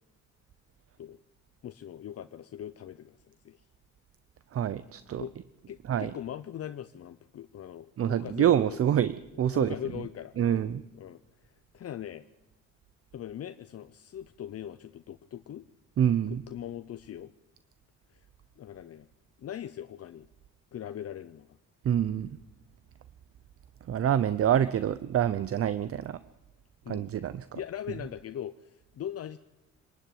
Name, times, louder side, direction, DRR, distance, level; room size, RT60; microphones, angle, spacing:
voice 1, 1.6-3.6 5.2-5.3 5.7-8.8 9.5-10.6 10.9-12.2 13.1-15.7 16.3-17.3 18.1-18.3 18.6-19.1 19.4-20.3 20.7-21.6 26.8-27.1 27.5-29.4, left 10 dB, 55° left, 10 dB, 0.8 m, -41 dB
voice 2, 4.5-5.3 5.8-6.2 8.0-10.1 10.3-10.8 16.0-16.4 21.9-22.4 23.8-26.2 26.9-27.6 27.9-28.1, right 10 dB, 50° right, 14 dB, 0.7 m, -27 dB
25.5 x 12.5 x 9.3 m, 1.0 s
cardioid pair, 90°, 30 cm